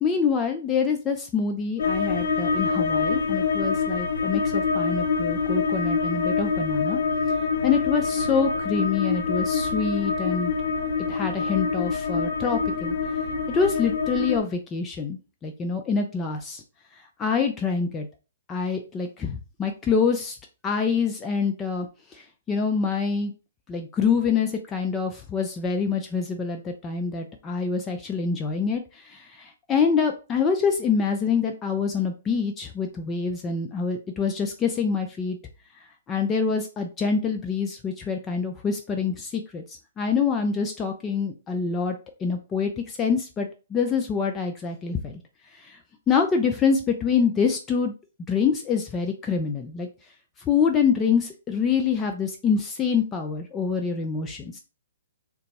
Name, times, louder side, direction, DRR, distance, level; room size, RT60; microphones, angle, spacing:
voice 1, 0.0-7.0 7.6-10.5 11.1-13.0 13.5-16.6 17.2-18.1 18.5-20.4 20.6-21.9 22.1-23.3 23.7-35.4 36.1-39.6 40.0-42.0 42.2-45.2 45.6-45.8 46.1-47.9 48.3-49.9 50.5-54.6, left 5 dB, 15° left, 3 dB, 0.4 m, -26 dB
sound 1, 1.8-14.4, left 5 dB, 70° left, 0.8 m, -25 dB
3.9 x 2.3 x 3.9 m, 0.32 s
hypercardioid pair, 155°, 0 cm